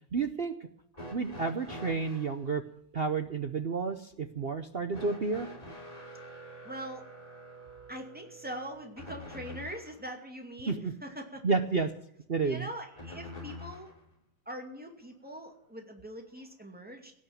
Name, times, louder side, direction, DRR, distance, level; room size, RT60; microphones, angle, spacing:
voice 1, 0.1-0.5 1.1-2.6 2.9-5.5 10.7-10.9 11.4-11.9 12.3-12.7, right 4 dB, 60° right, 8 dB, 0.6 m, -30 dB
sound 1, 0.9-2.4 4.9-10.0 13.0-14.0 15.2-15.3 16.4-16.5, left 1 dB, 20° left, 3.3 m, -46 dB
voice 2, 6.6-7.0 7.9-11.5 11.7-11.8 12.4-13.9 14.5-17.1, right 1 dB, 5° right, 2 dB, 2.4 m, -42 dB
17.0 x 6.5 x 9.1 m, 0.76 s
omnidirectional pair, 2.2 m